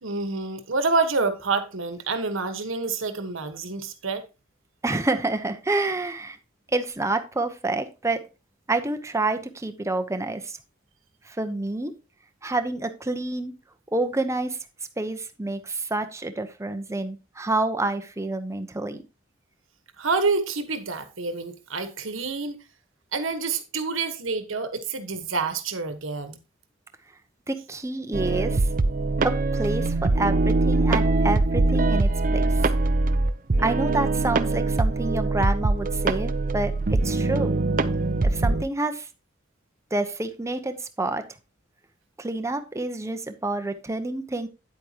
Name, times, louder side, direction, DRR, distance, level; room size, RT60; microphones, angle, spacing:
voice 1, 0.0-4.2 20.0-22.5 23.1-26.4, right 4 dB, 80° right, 1.3 m, -27 dB
voice 2, 4.8-6.4 6.7-8.2 8.7-10.6 11.3-11.9 12.4-13.5 13.9-14.6 15.0-19.0 27.5-28.7 29.2-32.7 33.6-37.5 38.2-39.1 39.9-41.2 42.2-44.5, right 2 dB, 15° right, 0.8 m, -28 dB
sound 1, 28.1-38.6, right 2 dB, 45° right, 0.6 m, -23 dB
9.4 x 8.4 x 2.9 m
head